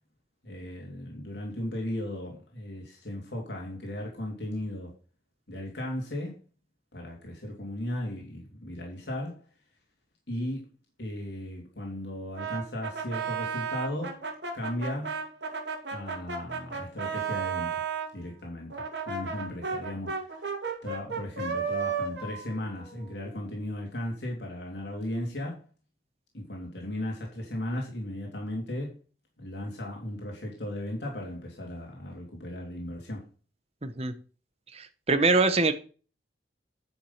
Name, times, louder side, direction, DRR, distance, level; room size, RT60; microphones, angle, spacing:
voice 1, 0.4-4.9 5.5-6.4 6.9-9.4 10.3-10.7 11.0-14.2 14.5-15.2 15.9-17.8 18.1-20.5 20.8-25.6 26.3-29.0 29.4-33.2, left 1 dB, 70° left, 3.1 m, -36 dB
Brass instrument, 12.3-18.1 18.7-23.5, right 5 dB, 90° right, 2.8 m, -34 dB
voice 2, 33.8-34.1 34.7-35.7, right 3 dB, 35° right, 1.1 m, -24 dB
10.0 x 6.4 x 5.7 m
head